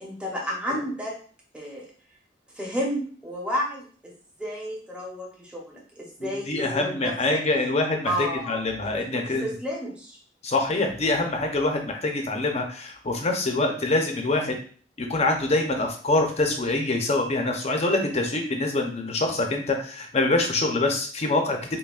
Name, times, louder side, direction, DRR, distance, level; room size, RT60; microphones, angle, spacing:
voice 1, 0.0-1.2 1.5-1.9 2.5-4.1 4.4-7.4 8.0-10.2, equal, 5° right, -3 dB, 0.9 m, -32 dB
voice 2, 6.2-9.5 10.4-14.5 15.0-21.6, left 2 dB, 35° left, 3 dB, 0.6 m, -25 dB
5.5 x 2.2 x 2.4 m, 0.44 s
head